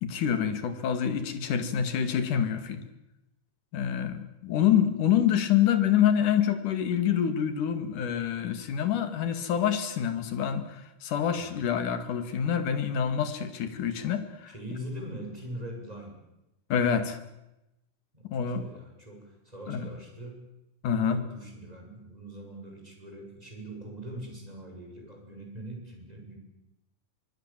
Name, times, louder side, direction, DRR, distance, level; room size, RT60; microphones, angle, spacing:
voice 1, 0.0-2.8 3.7-14.5 16.7-17.2 18.3-18.7 19.7-19.9 20.8-21.2, left 9 dB, 75° left, 10 dB, 3.6 m, -26 dB
voice 2, 11.4-11.8 14.5-16.2 18.1-20.4 21.0-26.4, right 1 dB, 10° right, 1 dB, 7.8 m, -42 dB
25.0 x 23.5 x 7.6 m, 0.91 s
omnidirectional pair, 3.7 m